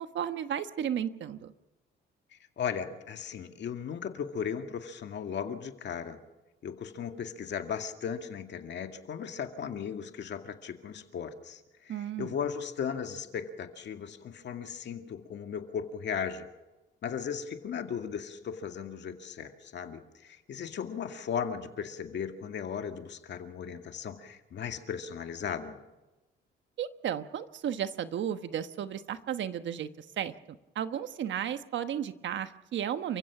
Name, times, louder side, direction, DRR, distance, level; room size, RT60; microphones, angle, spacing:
voice 1, 0.0-1.5 11.9-12.4 26.8-33.2, right 9 dB, 70° right, 10 dB, 1.2 m, -34 dB
voice 2, 2.3-6.2 6.6-16.5 17.0-25.8, left 7 dB, 65° left, 6 dB, 2.2 m, -37 dB
29.0 x 15.5 x 6.0 m, 1.0 s
cardioid pair, 90°, 20 cm